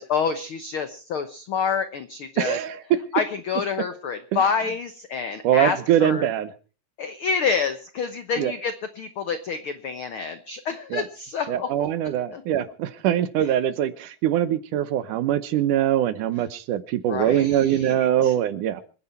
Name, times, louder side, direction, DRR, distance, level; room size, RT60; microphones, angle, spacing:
voice 1, 0.0-2.6 3.1-6.3 7.0-11.7 12.3-12.4 17.1-18.3, left 6 dB, 80° left, 10 dB, 1.2 m, -28 dB
voice 2, 2.4-3.0 4.3-4.5 5.4-6.5 8.4-8.5 10.9-11.1 11.5-18.8, right 11 dB, 70° right, 14 dB, 2.4 m, -23 dB
26.0 x 10.0 x 4.4 m, 0.37 s
omnidirectional pair, 3.9 m